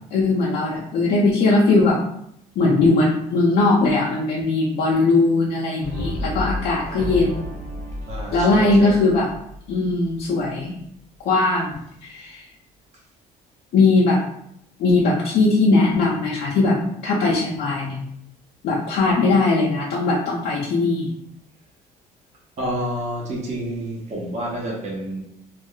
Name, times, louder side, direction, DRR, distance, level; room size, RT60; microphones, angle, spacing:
voice 1, 0.1-2.0 2.6-7.4 8.3-9.3 9.7-10.7 11.2-11.7 12.0-12.4 13.7-14.2 14.8-16.8 17.0-18.0 18.6-21.1, left 3 dB, 70° left, -5 dB, 0.6 m, -19 dB
Brass instrument, 5.8-10.1, left 1 dB, 85° right, 0.7 m, -31 dB
voice 2, 8.1-8.9 22.6-25.2, right 1 dB, 40° right, -3 dB, 0.9 m, -29 dB
2.3 x 2.1 x 3.7 m, 0.74 s
cardioid pair, 110°, 17 cm